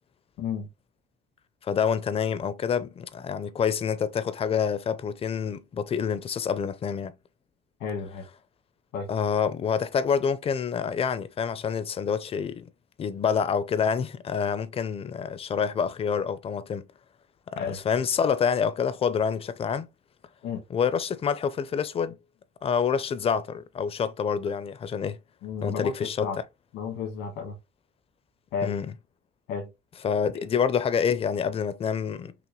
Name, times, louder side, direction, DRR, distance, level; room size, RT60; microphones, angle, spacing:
voice 1, 0.4-0.7 7.8-8.3 8.9-9.1 17.6-17.8 20.4-20.6 25.4-26.4 26.7-27.6 28.5-28.7 29.5-29.7, left 6 dB, 90° left, 1.5 m, -32 dB
voice 2, 1.6-7.1 9.1-12.7 13.0-16.9 17.5-19.9 20.7-22.2 22.6-25.2 25.6-26.3 28.6-28.9 30.0-32.3, left 7 dB, 35° left, 0.5 m, -27 dB
5.9 x 2.1 x 3.1 m
cardioid pair, 110°, 17 cm